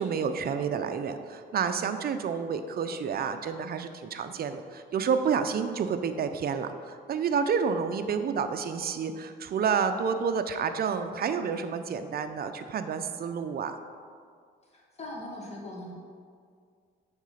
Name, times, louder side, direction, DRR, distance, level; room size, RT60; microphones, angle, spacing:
voice 1, 0.0-13.7, right 6 dB, 50° right, 8 dB, 0.6 m, -29 dB
voice 2, 14.7-15.9, left 1 dB, 35° left, -2 dB, 1.9 m, -40 dB
8.1 x 3.8 x 5.7 m, 2.1 s
cardioid pair, 90°, 20 cm